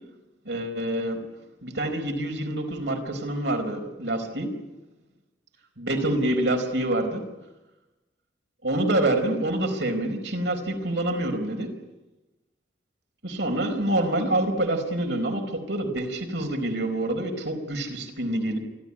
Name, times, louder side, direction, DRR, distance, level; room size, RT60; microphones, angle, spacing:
voice 1, 0.4-1.2 1.6-4.5 5.8-7.2 8.6-11.7 13.2-18.6, right 1 dB, 75° right, 4 dB, 4.7 m, -26 dB
27.0 x 13.0 x 9.9 m, 1.1 s
head